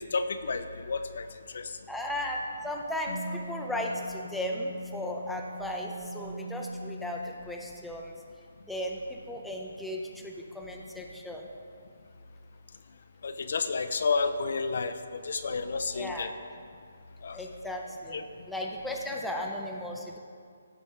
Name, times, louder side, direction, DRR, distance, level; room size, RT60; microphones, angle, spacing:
voice 1, 0.1-1.3 1.5-1.7 13.2-16.3 17.2-17.4 18.1-18.2, left 4 dB, 60° left, 9 dB, 0.5 m, -31 dB
voice 2, 1.9-8.1 8.6-11.5 14.8-14.9 15.9-16.3 17.3-20.2, left 1 dB, ahead, -1 dB, 0.6 m, -36 dB
Wind instrument woodwind instrument, 3.1-7.5, equal, 80° left, 1.2 m, -41 dB
14.5 x 6.0 x 3.3 m, 2.2 s
hypercardioid pair, 165°, 0 cm